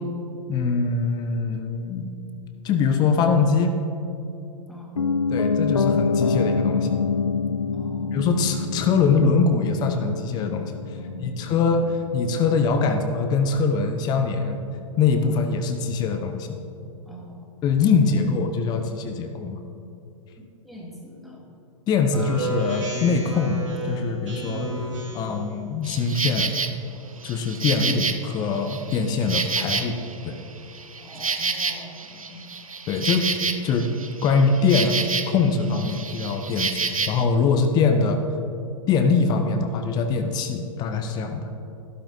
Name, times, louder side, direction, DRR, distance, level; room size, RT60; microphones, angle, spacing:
voice 1, 0.5-2.1 2.6-3.8 5.3-7.0 8.1-10.8 11.2-14.6 15.0-16.6 17.6-19.6 21.9-24.7 25.1-26.6 27.2-30.0 30.2-30.4 32.9-33.3 33.6-33.9 34.2-36.8 37.1-38.2 38.9-41.5, left 4 dB, 25° left, 6 dB, 0.7 m, -23 dB
Piano, 5.0-15.0 15.3-15.4, left 4 dB, 80° left, 0.5 m, -27 dB
voice 2, 7.7-8.1 11.0-11.5 17.1-17.5 18.1-18.2 20.4-21.4 31.0-32.5, equal, ahead, -4 dB, 1.9 m, -43 dB
Speech synthesizer, 22.1-25.4, equal, 60° right, 2.3 m, -30 dB
Insect, 25.8-26.7 27.2-30.2 30.6-35.5 35.7-37.2, right 4 dB, 80° right, 0.6 m, -29 dB
12.5 x 12.0 x 2.6 m, 2.6 s
figure-of-eight pair, 105°, 17 cm